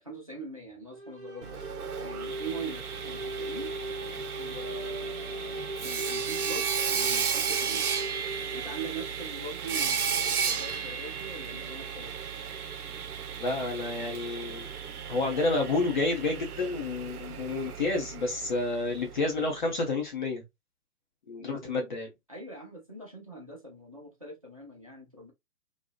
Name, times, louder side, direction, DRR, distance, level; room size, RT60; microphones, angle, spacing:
voice 1, 0.0-1.7 2.0-3.7 4.4-7.9 8.5-12.1 21.4-21.8 22.3-25.3, right 3 dB, 25° right, 0.3 m, -42 dB
sound 1, 0.9-9.3, right 1 dB, 40° right, 0.9 m, -39 dB
Sawing, 1.4-19.2, right 7 dB, 80° right, 0.5 m, -34 dB
voice 2, 13.4-14.7 15.1-20.4 21.3-22.1, left 3 dB, 35° left, 0.6 m, -30 dB
2.7 x 2.0 x 2.3 m
figure-of-eight pair, 125°, 44 cm